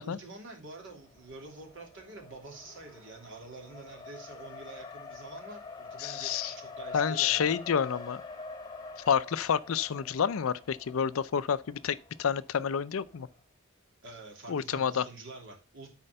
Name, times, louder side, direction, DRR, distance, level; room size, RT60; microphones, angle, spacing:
voice 1, 0.0-7.5 14.0-15.9, right 2 dB, 60° right, 2.8 m, -47 dB
Race car auto racing, 0.8-13.4, left 4 dB, 20° left, 1.2 m, -46 dB
voice 2, 6.0-6.5 6.9-8.2 9.1-13.3 14.5-15.0, left 7 dB, 65° left, 0.5 m, -29 dB
9.7 x 4.5 x 6.5 m
head